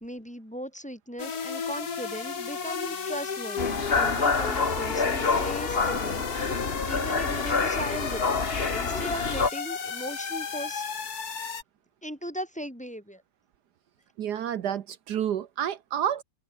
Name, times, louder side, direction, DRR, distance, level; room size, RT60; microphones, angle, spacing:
voice 1, 0.0-6.6 6.9-8.2 8.5-10.9 12.0-13.2, equal, 5° left, 3.1 m, -38 dB
sound 1, 1.2-11.6, left 6 dB, 60° left, 2.5 m, -34 dB
sound 2, 3.6-9.5, left 4 dB, 35° left, 2.0 m, -27 dB
voice 2, 14.2-16.2, right 9 dB, 75° right, 1.5 m, -29 dB
omnidirectional pair, 1.8 m